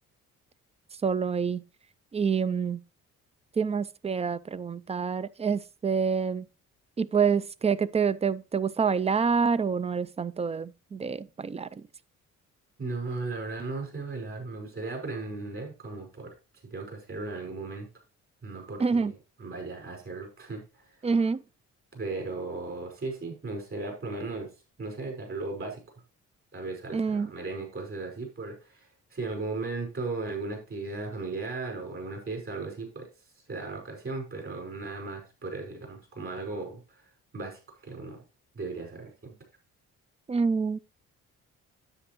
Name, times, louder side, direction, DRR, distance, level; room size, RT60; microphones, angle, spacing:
voice 1, 1.0-1.6 2.1-2.8 3.6-6.5 7.0-11.9 18.8-19.1 21.0-21.4 26.9-27.3 40.3-40.8, right 5 dB, 20° right, 0.4 m, -27 dB
voice 2, 12.8-16.3 16.6-17.9 18.4-21.1 21.9-24.5 24.8-25.8 26.5-37.0 37.3-38.2 38.5-39.3, right 3 dB, 45° right, 5.1 m, -36 dB
9.9 x 7.9 x 3.0 m
cardioid pair, 90°, 30 cm